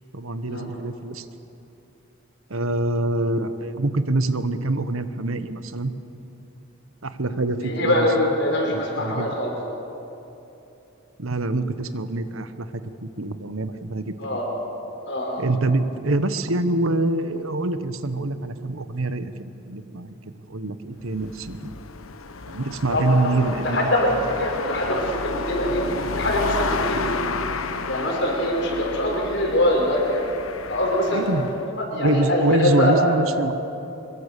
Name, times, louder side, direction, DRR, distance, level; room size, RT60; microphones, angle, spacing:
voice 1, 0.1-1.3 2.5-5.9 7.0-8.3 8.7-9.3 11.2-14.4 15.4-19.3 19.7-20.2 20.5-21.7 22.5-23.9 31.1-31.5 31.9-33.5, right 2 dB, 80° right, 11 dB, 1.2 m, -25 dB
voice 2, 7.6-9.5 14.2-14.5 15.1-15.4 22.9-23.0 23.6-27.2 27.9-30.3 30.7-31.3 31.9-32.9, left 1 dB, 60° left, 0 dB, 5.6 m, -23 dB
sound 1, 21.0-31.6, left 4 dB, 85° left, 1.1 m, -31 dB
25.0 x 22.5 x 6.9 m, 3.0 s
head